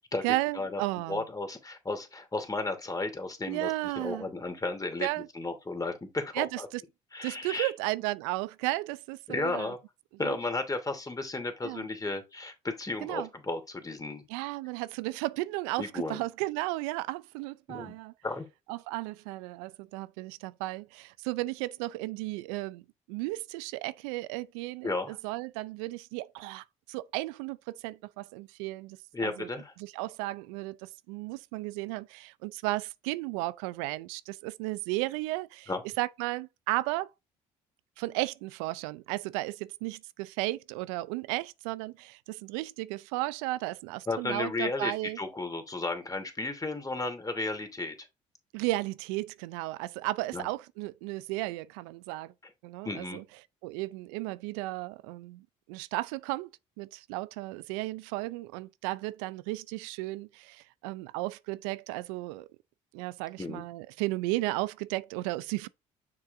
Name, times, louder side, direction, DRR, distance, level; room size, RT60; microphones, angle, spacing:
voice 1, 0.2-1.2 3.5-4.3 5.0-5.3 6.3-6.8 7.2-9.7 10.2-10.4 11.6-11.9 13.0-13.3 14.3-18.1 18.7-22.8 23.1-29.5 29.8-35.7 36.0-37.1 38.0-45.2 48.5-52.3 52.6-53.2 53.6-56.5 56.8-62.5 62.9-65.7, right 19 dB, 80° right, 0.4 m, -34 dB
voice 2, 1.1-6.7 7.1-7.7 9.3-9.8 10.2-14.2 15.8-16.2 17.7-18.0 18.2-18.5 24.8-25.2 29.1-29.7 35.7-35.8 44.1-48.1 50.3-50.5 52.8-53.2 63.4-63.6, left 2 dB, 20° left, 2.9 m, -34 dB
7.1 x 6.1 x 2.6 m
hypercardioid pair, 55°, 16 cm